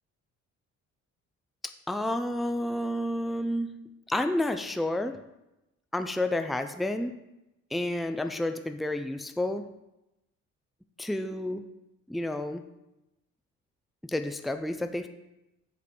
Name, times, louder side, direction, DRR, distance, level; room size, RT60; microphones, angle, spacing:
voice 1, 1.9-3.7 4.1-5.2 5.9-7.1 7.7-9.7 11.0-11.6 12.1-12.6 14.0-15.1, left 1 dB, ahead, 8 dB, 0.4 m, -30 dB
8.1 x 5.1 x 4.4 m, 0.94 s
cardioid pair, 90°, 30 cm